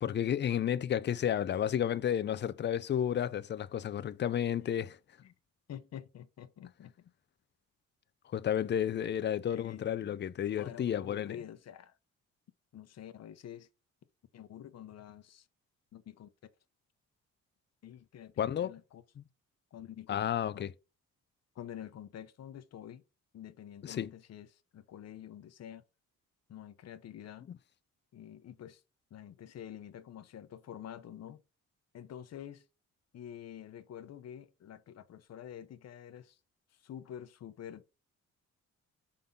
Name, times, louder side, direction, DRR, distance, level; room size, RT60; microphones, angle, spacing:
voice 1, 0.0-5.0 8.3-11.4 18.4-18.7 19.2-19.3 20.1-20.7 23.8-24.1 27.5-27.6, left 9 dB, 35° left, 0.5 m, -32 dB
voice 2, 5.7-7.1 9.4-10.2 10.5-12.0 12.7-13.7 14.3-15.5 15.9-16.3 17.8-19.0 19.7-20.3 20.5-20.7 21.5-23.0 23.3-25.8 26.5-27.5 28.1-28.8 29.1-31.4 31.9-32.6 33.1-36.4 36.8-37.8, left 10 dB, 60° left, 0.9 m, -48 dB
5.7 x 3.8 x 5.3 m
cardioid pair, 90°, 30 cm